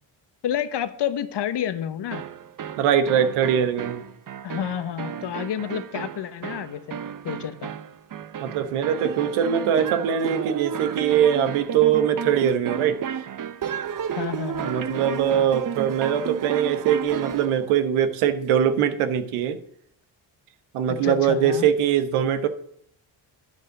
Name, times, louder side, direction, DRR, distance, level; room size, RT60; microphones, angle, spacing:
voice 1, 0.4-2.2 4.4-7.7 14.1-14.7 20.9-21.7, left 9 dB, 55° left, 12 dB, 1.1 m, -30 dB
sound 1, 2.1-17.6, right 8 dB, 40° right, 0.8 m, -32 dB
voice 2, 2.8-4.0 8.4-13.0 14.6-19.6 20.7-22.5, right 9 dB, 90° right, 10 dB, 1.1 m, -22 dB
11.0 x 5.4 x 7.7 m, 0.68 s
supercardioid pair, 65°, 49 cm